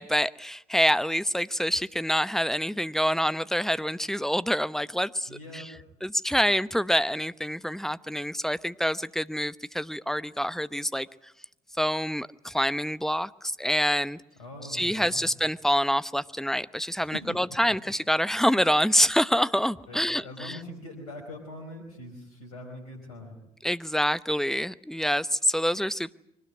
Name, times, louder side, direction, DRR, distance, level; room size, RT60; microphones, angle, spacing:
voice 1, 0.0-5.6 6.0-11.1 11.8-14.2 14.7-20.6 23.6-26.1, equal, ahead, 15 dB, 1.0 m, -26 dB
voice 2, 5.3-5.7 14.4-15.3 17.0-17.4 19.9-23.4, left 1 dB, 90° left, 1 dB, 4.7 m, -42 dB
24.0 x 19.0 x 9.8 m, 0.76 s
hypercardioid pair, 55°, 18 cm